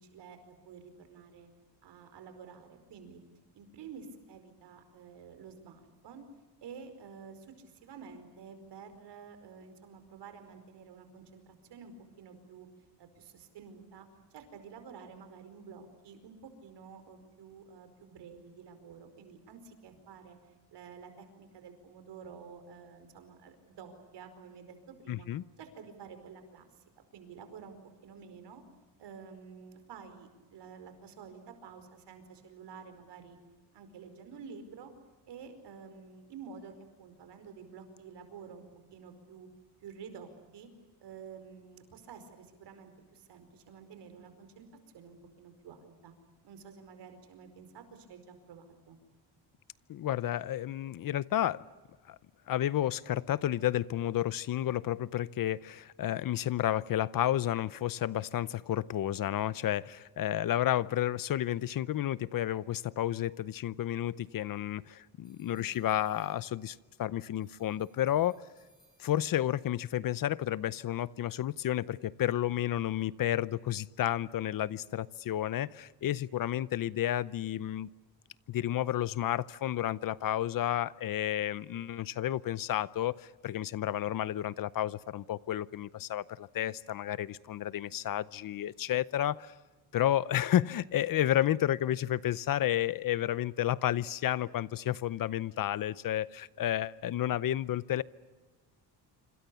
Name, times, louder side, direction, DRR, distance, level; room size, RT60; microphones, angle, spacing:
voice 1, 0.0-1.5 1.8-3.2 3.5-6.3 6.6-12.7 13.0-14.1 14.3-20.4 20.7-25.3 25.6-26.7 27.0-27.7 28.0-28.6 29.0-33.4 33.7-34.9 35.3-36.7 37.0-38.6 38.9-39.5 39.8-40.7 41.0-44.7 44.9-46.1 46.4-49.0 65.5-65.9, right 6 dB, 75° right, 9 dB, 4.9 m, -50 dB
voice 2, 25.1-25.4 49.9-51.7 52.1-52.2 52.5-68.4 69.0-77.9 78.5-89.5 89.9-98.0, left 12 dB, 50° left, 19 dB, 0.7 m, -31 dB
sound 1, 65.2-66.9 67.3-69.6, left 1 dB, 10° left, 7.4 m, -69 dB
26.5 x 26.5 x 6.9 m, 1.3 s
cardioid pair, 140°, 42 cm